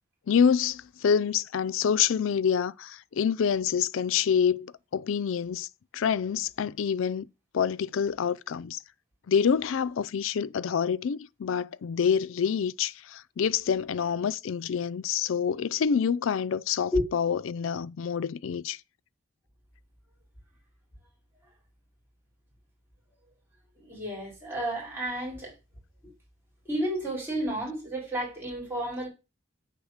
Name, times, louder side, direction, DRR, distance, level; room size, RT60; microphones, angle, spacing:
voice 1, 0.3-5.7 5.9-7.3 7.5-8.8 9.3-18.8, left 7 dB, 75° left, 0.4 m, -27 dB
voice 2, 23.8-25.5 26.7-29.1, equal, 10° right, 4.1 m, -31 dB
8.4 x 3.9 x 6.4 m
head